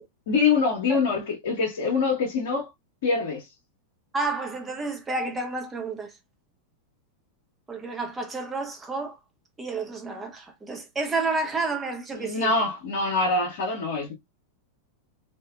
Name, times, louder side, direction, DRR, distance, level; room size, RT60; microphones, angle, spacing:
voice 1, 0.3-2.7 3.0-3.4 12.1-14.1, left 4 dB, 60° left, 1.0 m, -24 dB
voice 2, 4.1-6.1 7.7-9.2 9.6-12.5, right 3 dB, 15° right, 0.8 m, -30 dB
2.9 x 2.5 x 2.2 m
figure-of-eight pair, 90°, 0 cm